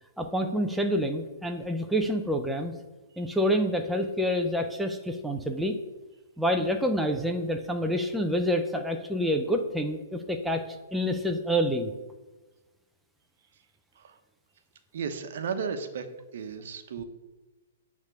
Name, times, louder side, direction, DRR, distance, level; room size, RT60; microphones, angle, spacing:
voice 1, 0.2-2.7 3.2-5.8 6.4-11.9, equal, ahead, 3 dB, 0.7 m, -27 dB
voice 2, 14.9-16.1 16.3-17.0, right 6 dB, 65° right, 8 dB, 1.0 m, -34 dB
9.0 x 3.6 x 6.3 m, 1.2 s
hypercardioid pair, 145°, 0 cm